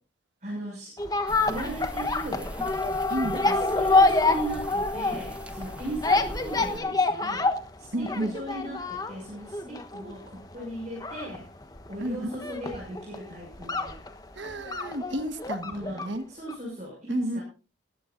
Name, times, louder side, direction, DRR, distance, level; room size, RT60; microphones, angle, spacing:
voice 1, 0.4-0.9 1.4-2.5 3.3-7.5 7.8-7.9 8.2-11.5 11.9-14.0 15.6-17.4, right 1 dB, 40° right, -3 dB, 6.0 m, -37 dB
sound 1, 1.0-16.2 16.5-16.6, left 3 dB, 20° left, 1.2 m, -27 dB
sound 2, 1.3-6.8, equal, 5° right, 1.1 m, -40 dB
voice 2, 3.1-3.4 7.9-8.4 12.0-12.3 14.3-16.3 17.1-17.4, right 1 dB, 70° right, 10 dB, 1.5 m, -31 dB
19.0 x 15.0 x 2.6 m, 0.35 s
head